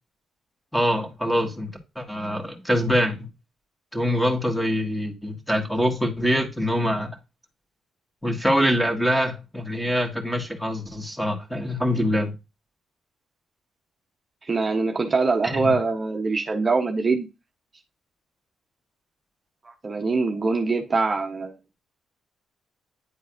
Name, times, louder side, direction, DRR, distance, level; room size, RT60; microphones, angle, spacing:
voice 1, 0.7-1.7 1.9-3.3 3.9-7.1 8.2-12.3 15.4-15.7, equal, 5° left, 1.7 m, -24 dB
voice 2, 14.5-17.2 19.6-21.5, right 3 dB, 30° right, 0.8 m, -23 dB
9.7 x 3.9 x 2.5 m
cardioid pair, 90°, 0 cm